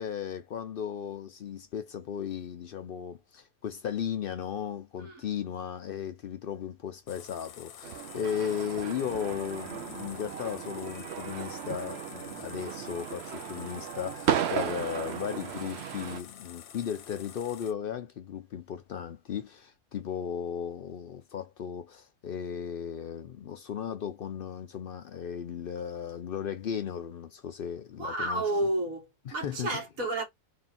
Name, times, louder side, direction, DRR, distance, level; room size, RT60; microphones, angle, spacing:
voice 1, 0.0-28.5 29.3-29.8, left 8 dB, 65° left, 0.5 m, -36 dB
sound 1, 7.1-17.7, left 9 dB, 85° left, 1.1 m, -49 dB
sound 2, 7.8-16.2, right 9 dB, 60° right, 0.8 m, -35 dB
voice 2, 28.0-30.2, right 1 dB, 80° right, 2.1 m, -31 dB
3.7 x 2.5 x 4.1 m
omnidirectional pair, 1.4 m